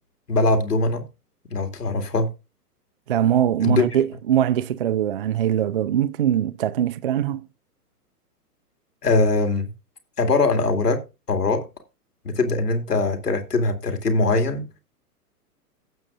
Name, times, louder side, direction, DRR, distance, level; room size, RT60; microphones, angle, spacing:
voice 1, 0.3-1.0 1.5-2.3 3.6-3.9 9.0-9.7 10.2-11.0 11.3-11.7 12.2-14.7, left 2 dB, 75° left, 2.3 m, -21 dB
voice 2, 3.1-7.5, right 10 dB, 40° right, 0.4 m, -22 dB
17.0 x 7.3 x 2.4 m
figure-of-eight pair, 110°, 47 cm